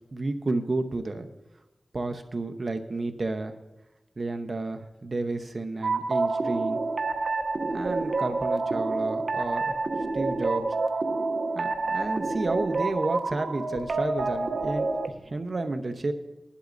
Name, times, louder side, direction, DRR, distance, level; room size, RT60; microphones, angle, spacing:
voice 1, 0.1-1.3 1.9-3.5 4.2-6.8 7.7-9.8 10.1-10.6 11.5-16.1, right 2 dB, 55° right, 7 dB, 0.8 m, -31 dB
sound 1, 5.8-15.1, right 3 dB, 80° right, 0.7 m, -28 dB
20.5 x 11.5 x 2.6 m, 0.98 s
wide cardioid pair, 65°, 0 cm